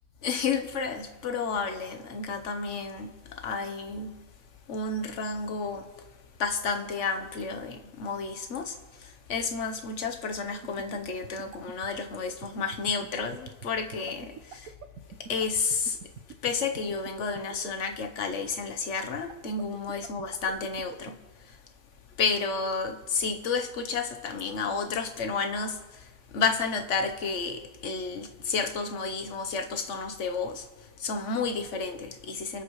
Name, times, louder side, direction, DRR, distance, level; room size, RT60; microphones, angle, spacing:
voice 1, 0.2-4.2 4.7-5.9 6.4-14.7 15.2-16.0 16.4-21.6 22.2-32.6, left 5 dB, 50° left, 1.2 m, -31 dB
sound 1, 10.6-17.7 19.0-21.1, right 9 dB, 65° right, 1.2 m, -42 dB
25.5 x 9.1 x 3.2 m
omnidirectional pair, 1.7 m